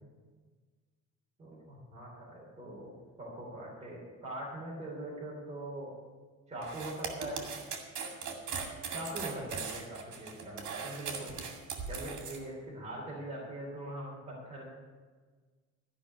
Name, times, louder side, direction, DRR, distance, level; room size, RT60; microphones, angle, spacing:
voice 1, 1.4-2.9 3.2-5.9 6.5-7.4 8.9-11.3 11.9-14.7, right 1 dB, 25° right, -5 dB, 3.6 m, -42 dB
sound 1, 6.6-12.4, right 6 dB, 80° right, 2.2 m, -39 dB
13.5 x 5.9 x 9.6 m, 1.4 s
cardioid pair, 165°, 30 cm